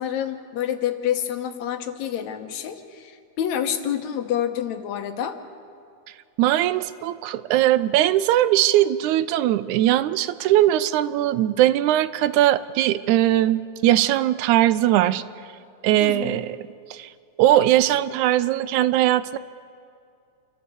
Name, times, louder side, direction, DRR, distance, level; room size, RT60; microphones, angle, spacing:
voice 1, 0.0-5.4 16.0-16.4, left 10 dB, 75° left, 7 dB, 2.3 m, -28 dB
voice 2, 6.4-15.2 15.8-16.6 16.9-17.1 17.4-19.4, right 13 dB, 85° right, 15 dB, 2.1 m, -20 dB
28.5 x 13.0 x 7.0 m, 2.4 s
omnidirectional pair, 3.3 m